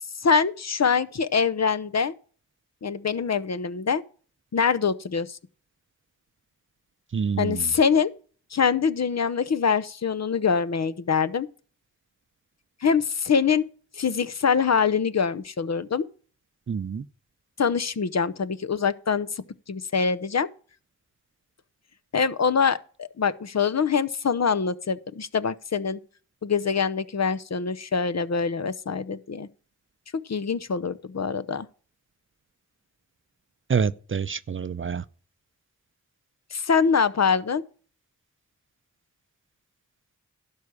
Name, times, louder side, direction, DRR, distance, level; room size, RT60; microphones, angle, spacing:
voice 1, 0.2-2.1 2.8-4.0 4.5-5.4 7.4-8.1 8.5-11.5 12.8-13.6 14.0-16.1 17.6-19.3 19.7-20.5 22.1-26.0 26.4-29.5 30.3-31.7 36.5-37.6, left 6 dB, 55° left, 0.8 m, -24 dB
voice 2, 7.1-7.7 16.7-17.0 33.7-35.0, right 6 dB, 40° right, 0.5 m, -27 dB
12.0 x 4.8 x 8.3 m
cardioid pair, 40°, 32 cm